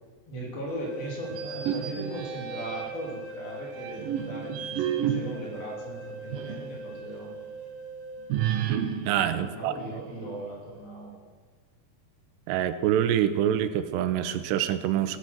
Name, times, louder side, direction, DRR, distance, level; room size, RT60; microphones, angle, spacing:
voice 1, 0.3-7.3 9.4-11.2, right 1 dB, 60° left, -2 dB, 5.2 m, -38 dB
sound 1, 0.7-8.3, right 1 dB, 25° left, 5.7 m, -41 dB
sound 2, 1.3-3.1 3.7-6.7 7.1-7.2 8.3-10.4, right 9 dB, 75° right, 2.2 m, -32 dB
voice 2, 9.1-9.7 12.5-15.2, right 10 dB, 90° right, 11 dB, 3.0 m, -25 dB
16.0 x 12.5 x 6.2 m, 1.4 s
omnidirectional pair, 4.9 m